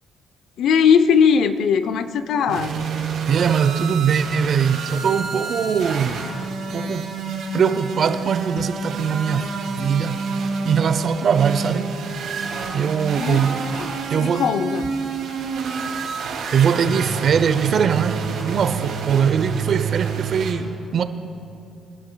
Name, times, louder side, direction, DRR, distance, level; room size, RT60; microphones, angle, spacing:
voice 1, 0.6-2.7 13.2-13.4 13.7-14.8, left 7 dB, 75° left, 0.5 m, -19 dB
sound 1, 2.5-20.5, right 5 dB, 85° right, 2.3 m, -28 dB
voice 2, 3.3-6.2 6.7-7.2 7.5-9.5 9.8-10.2 10.6-12.0 12.7-13.7 14.1-14.5 16.5-21.0, right 7 dB, 60° right, 0.6 m, -21 dB
23.5 x 11.5 x 2.3 m
cardioid pair, 90°, 0 cm